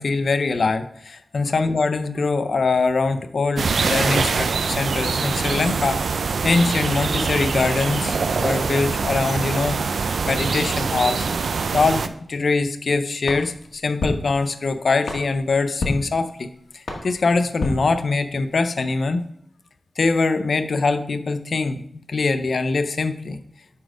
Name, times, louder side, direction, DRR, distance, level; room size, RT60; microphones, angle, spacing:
voice 1, 0.0-6.0 6.4-9.8 10.2-11.3 11.7-16.5 16.7-19.2 20.0-23.4, left 3 dB, 55° left, 10 dB, 0.6 m, -23 dB
sound 1, 3.6-12.1, right 5 dB, 70° right, 0.4 m, -24 dB
sound 2, 13.2-18.6, left 2 dB, 75° left, 1.7 m, -32 dB
9.7 x 4.1 x 5.0 m, 0.69 s
wide cardioid pair, 160°, 0 cm